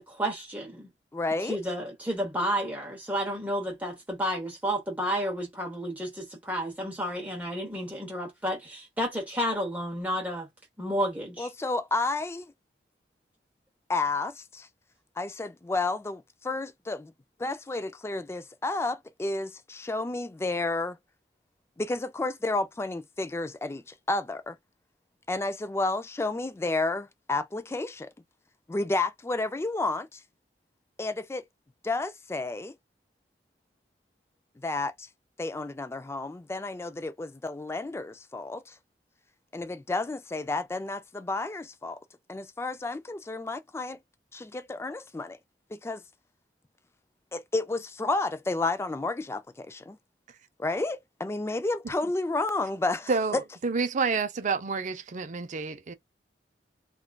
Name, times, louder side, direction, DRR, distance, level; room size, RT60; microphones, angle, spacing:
voice 1, 0.1-0.9 1.4-10.5 10.8-11.5, equal, 10° right, 0.8 m, -31 dB
voice 2, 1.1-1.6 11.4-12.5 13.9-14.7 15.2-17.1 17.4-21.0 21.8-24.6 25.3-28.1 28.7-30.2 31.0-31.4 31.8-32.7 34.6-35.1 35.4-38.7 39.5-42.0 42.3-44.0 44.3-45.4 45.7-46.0 47.3-50.0 50.6-53.1, left 2 dB, 15° left, 0.3 m, -31 dB
voice 3, 53.1-55.9, right 4 dB, 45° right, 0.5 m, -29 dB
3.6 x 2.3 x 2.2 m
head